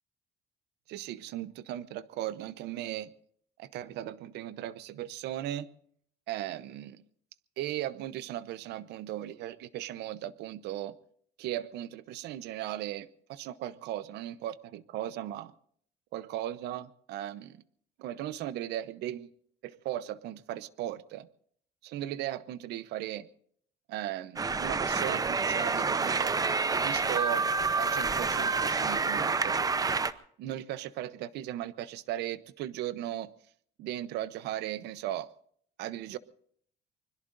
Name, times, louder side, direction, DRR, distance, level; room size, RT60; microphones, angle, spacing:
voice 1, 0.9-3.1 3.6-5.7 6.3-7.0 7.6-11.0 11.4-15.5 16.1-17.6 18.0-19.3 19.6-21.3 21.8-23.3 23.9-26.3 26.7-27.5 27.8-29.6 30.4-33.3 33.8-35.3 35.8-36.2, right 13 dB, 80° right, 16 dB, 0.8 m, -37 dB
sound 1, 24.4-30.1, right 4 dB, 20° right, 0.7 m, -28 dB
25.0 x 21.5 x 2.6 m, 0.62 s
cardioid pair, 110°, 17 cm